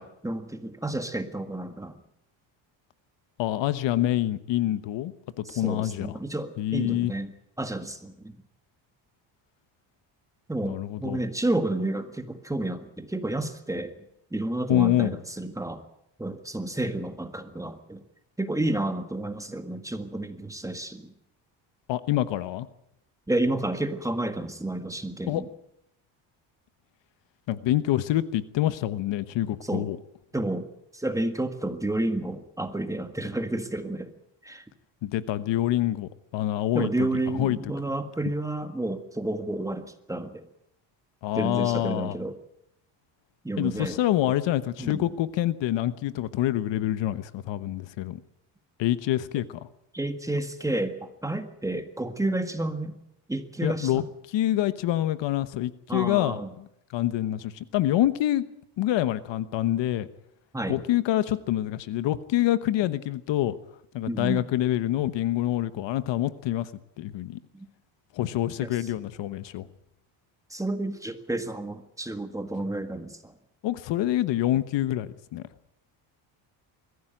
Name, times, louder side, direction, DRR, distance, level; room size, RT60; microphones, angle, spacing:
voice 1, 0.0-2.0 5.5-7.3 7.6-8.4 10.5-13.9 14.3-15.8 16.2-18.0 18.4-21.1 23.3-25.5 29.6-29.9 30.3-34.1 34.4-34.6 36.7-40.5 41.4-42.4 43.4-44.0 44.8-45.1 49.9-52.9 53.3-54.0 55.9-56.5 60.5-60.8 64.1-64.4 67.5-67.7 68.6-68.9 70.5-73.3, right 2 dB, 5° right, 8 dB, 1.8 m, -30 dB
voice 2, 3.4-5.1 5.4-6.2 6.6-7.1 10.6-11.2 14.7-15.2 21.9-22.7 25.3-25.4 27.5-30.0 35.0-37.1 37.4-37.6 41.2-42.2 43.6-48.2 48.8-49.4 53.6-54.0 54.3-58.4 58.8-60.1 60.7-63.6 63.9-66.7 67.0-67.4 68.1-69.7 73.6-75.4, left 13 dB, 65° left, 14 dB, 1.2 m, -26 dB
22.0 x 15.0 x 9.1 m, 0.77 s
cardioid pair, 125°, 47 cm